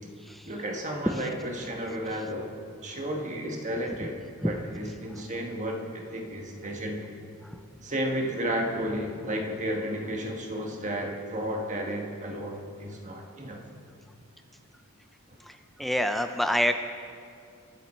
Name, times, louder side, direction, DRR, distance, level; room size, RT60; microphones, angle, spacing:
voice 1, 0.4-2.5 2.8-4.2 4.4-7.1 7.8-13.6, equal, 35° right, 1 dB, 1.4 m, -32 dB
voice 2, 15.8-16.7, equal, ahead, 7 dB, 0.4 m, -25 dB
22.0 x 7.6 x 4.3 m, 2.4 s
head